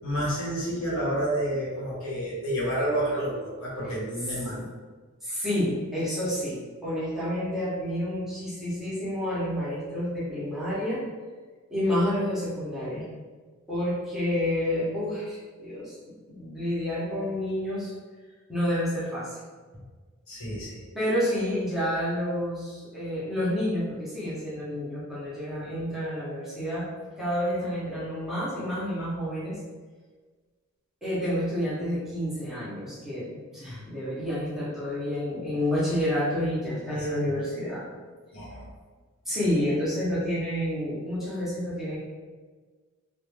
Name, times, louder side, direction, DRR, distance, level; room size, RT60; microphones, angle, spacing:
voice 1, 0.0-4.5 20.3-20.8 36.9-37.1 38.3-38.7, right 1 dB, 65° left, -7 dB, 1.0 m, -29 dB
voice 2, 5.2-11.0 11.7-13.0 13.7-17.9 18.5-19.4 20.9-26.9 27.2-29.6 31.0-37.9 39.2-42.0, left 1 dB, ahead, -10 dB, 0.7 m, -29 dB
2.4 x 2.1 x 3.1 m, 1.4 s
head